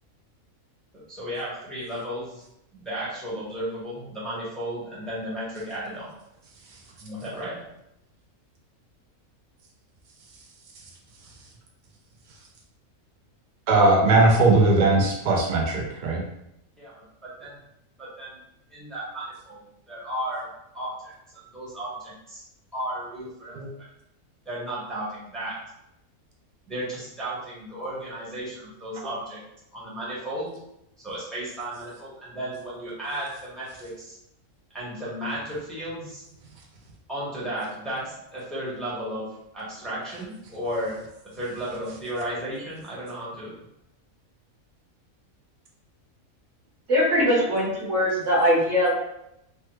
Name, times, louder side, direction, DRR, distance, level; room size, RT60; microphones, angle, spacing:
voice 1, 1.1-2.4 2.7-6.1 7.0-7.6 16.8-16.9 17.4-17.6 18.0-18.4 18.7-20.5 20.7-22.4 22.7-23.6 24.4-25.5 26.7-29.4 29.7-30.5 31.0-34.1 34.7-36.2 37.1-38.0 38.3-39.3 39.5-41.0 41.4-43.5, right 1 dB, ahead, -8 dB, 0.9 m, -34 dB
voice 2, 13.7-16.2 23.6-23.7, right 2 dB, 90° right, 0 dB, 0.4 m, -19 dB
voice 3, 46.9-48.9, equal, 65° right, -5 dB, 1.3 m, -21 dB
3.2 x 2.1 x 3.0 m, 0.82 s
omnidirectional pair, 1.5 m